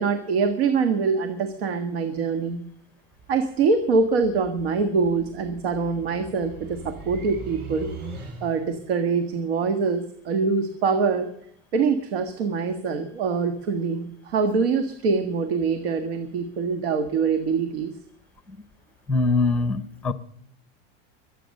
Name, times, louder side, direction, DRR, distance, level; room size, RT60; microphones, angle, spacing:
voice 1, 0.0-2.6 3.3-7.9 8.4-11.3 11.7-17.9, right 5 dB, 80° right, 8 dB, 1.8 m, -24 dB
sound 1, 3.1-8.8, right 4 dB, 35° right, 7.1 m, -41 dB
voice 2, 19.1-20.1, left 3 dB, 5° left, 14 dB, 0.6 m, -23 dB
23.0 x 9.1 x 6.6 m, 0.70 s
supercardioid pair, 175°, 30 cm